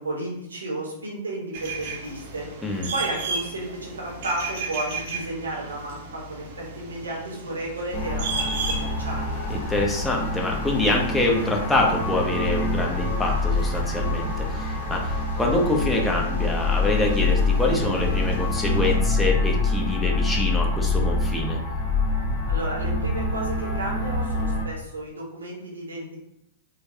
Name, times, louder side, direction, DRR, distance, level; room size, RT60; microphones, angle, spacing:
voice 1, 0.0-2.5 2.9-9.3 22.5-26.2, right 2 dB, 85° right, -2 dB, 0.8 m, -33 dB
sound 1, 1.5-19.0, right 3 dB, 55° right, 0.5 m, -36 dB
sound 2, 7.9-24.6, left 2 dB, 50° left, 1.0 m, -25 dB
voice 2, 9.5-21.6, left 2 dB, 10° left, -1 dB, 0.6 m, -25 dB
3.1 x 2.2 x 2.6 m, 0.78 s
hypercardioid pair, 110°, 0 cm